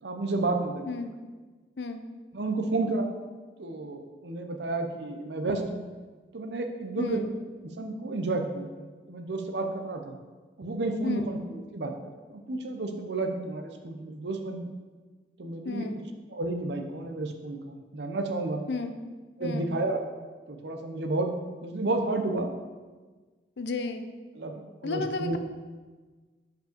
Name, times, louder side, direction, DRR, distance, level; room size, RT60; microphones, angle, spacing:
voice 1, 0.0-0.9 2.3-3.1 3.6-5.8 6.3-7.2 7.8-10.2 10.6-11.9 12.3-14.7 15.4-15.9 16.3-18.7 19.4-20.0 20.5-21.3 21.6-22.5 24.4-25.4, right 2 dB, 75° right, 5 dB, 0.7 m, -31 dB
voice 2, 7.0-7.3 11.0-11.3 15.6-16.0 18.7-19.0 19.4-19.7 23.6-24.1 24.8-25.4, left 3 dB, 75° left, 8 dB, 0.5 m, -32 dB
5.2 x 5.2 x 5.2 m, 1.4 s
head